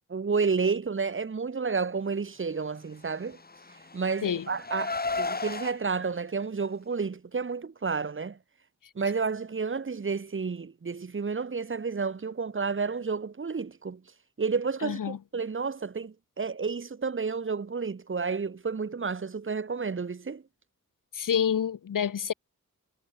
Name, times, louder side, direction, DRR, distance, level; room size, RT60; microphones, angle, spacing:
voice 1, 0.0-3.4 3.9-8.4 8.9-14.0 14.4-20.4, right 5 dB, 40° right, 2.7 m, -31 dB
Car, 3.2-5.7, left 3 dB, 30° left, 4.7 m, -34 dB
voice 2, 14.8-15.2 21.1-22.3, left 8 dB, 90° left, 1.8 m, -28 dB
wide cardioid pair, 160°, 31 cm